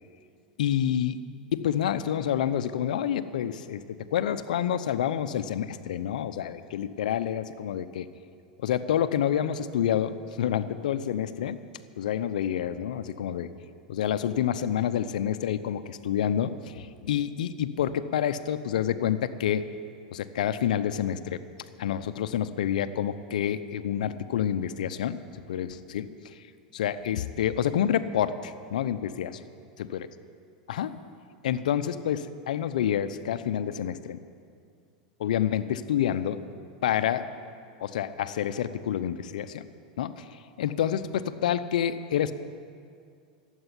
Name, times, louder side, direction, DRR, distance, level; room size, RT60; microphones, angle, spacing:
voice 1, 0.6-1.2 1.5-3.8 4.1-8.1 8.6-11.6 12.0-13.5 13.9-19.7 20.1-21.4 21.8-26.1 26.7-29.4 29.9-30.1 30.7-31.0 31.4-34.2 35.2-36.4 36.8-37.3 37.8-39.6 40.0-42.3, left 10 dB, 80° left, 12 dB, 0.7 m, -28 dB
12.5 x 8.2 x 9.8 m, 2.3 s
hypercardioid pair, 115°, 4 cm